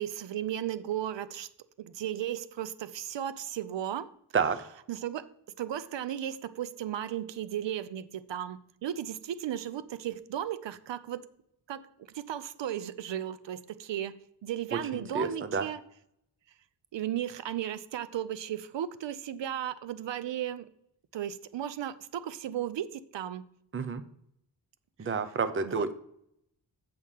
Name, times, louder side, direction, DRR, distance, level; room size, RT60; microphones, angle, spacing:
voice 1, 0.0-1.5 1.8-4.1 4.9-5.3 5.6-11.3 11.7-15.8 16.9-20.7 21.1-23.4 25.6-25.9, right 11 dB, 80° right, 0.6 m, -35 dB
voice 2, 14.7-15.7 23.7-24.0 25.0-26.0, right 5 dB, 30° right, 0.6 m, -30 dB
7.6 x 6.5 x 5.5 m
wide cardioid pair, 155°, 43 cm